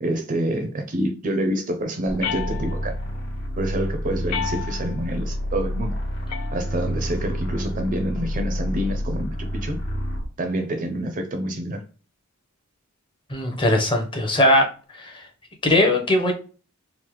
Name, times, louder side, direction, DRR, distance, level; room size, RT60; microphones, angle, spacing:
voice 1, 0.0-2.9 3.6-6.0 6.5-9.4 9.6-9.8 10.4-11.8, right 1 dB, 35° right, 0.4 m, -27 dB
sound 1, 2.1-10.3, equal, 55° left, 1.2 m, -29 dB
sound 2, 2.2-3.1 4.3-5.1 6.3-7.1, left 9 dB, 80° left, 0.3 m, -33 dB
voice 2, 13.3-14.7 15.0-15.2 15.6-16.3, left 1 dB, 20° left, 0.6 m, -19 dB
3.3 x 2.0 x 2.9 m
head